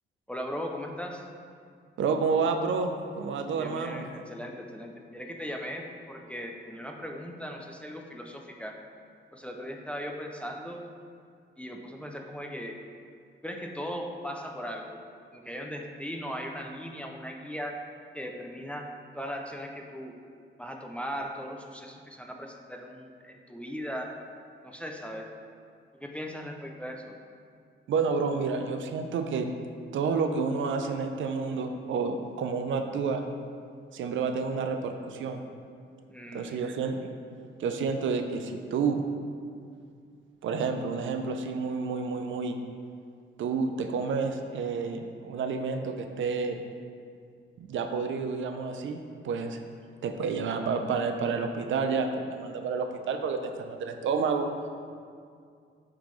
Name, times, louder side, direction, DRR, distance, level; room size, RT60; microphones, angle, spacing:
voice 1, 0.3-1.3 3.6-8.8 9.3-10.9 11.6-12.8 13.4-15.0 15.3-17.8 18.1-20.2 20.6-24.2 24.6-25.3 26.0-27.1 36.1-36.6, equal, 5° left, 1 dB, 0.3 m, -38 dB
voice 2, 2.0-4.0 27.9-29.5 29.9-33.2 33.9-35.4 36.3-37.1 37.6-39.0 40.4-42.6 43.4-46.6 47.6-49.6 50.0-54.5, right 5 dB, 80° right, 6 dB, 0.5 m, -29 dB
8.8 x 3.7 x 3.1 m, 2.2 s
wide cardioid pair, 175°, 20 cm